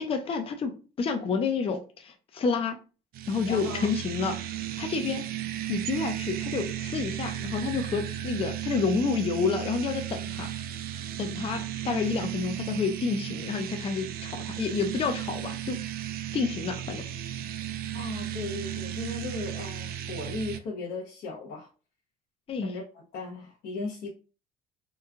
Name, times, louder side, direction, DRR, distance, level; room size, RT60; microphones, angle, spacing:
voice 1, 0.0-2.8 3.3-5.2 5.7-10.5 11.2-15.8 16.3-17.0 22.5-22.7, left 5 dB, 35° left, 0.5 m, -29 dB
sound 1, 3.1-20.6, right 12 dB, 65° right, 0.4 m, -35 dB
voice 2, 3.5-3.9 17.9-21.7 22.6-24.1, left 3 dB, 75° left, 0.9 m, -37 dB
3.1 x 2.3 x 3.5 m
cardioid pair, 110°, 17 cm